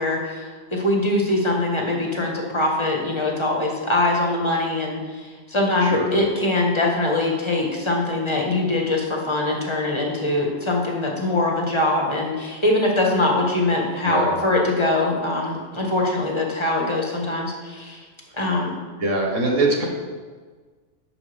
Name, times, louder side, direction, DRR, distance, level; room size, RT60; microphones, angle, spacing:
voice 1, 0.0-18.0 18.4-18.8, left 2 dB, 25° left, -1 dB, 1.5 m, -22 dB
voice 2, 19.0-19.8, right 2 dB, 75° right, 0 dB, 1.9 m, -22 dB
11.0 x 7.0 x 3.5 m, 1.4 s
omnidirectional pair, 1.3 m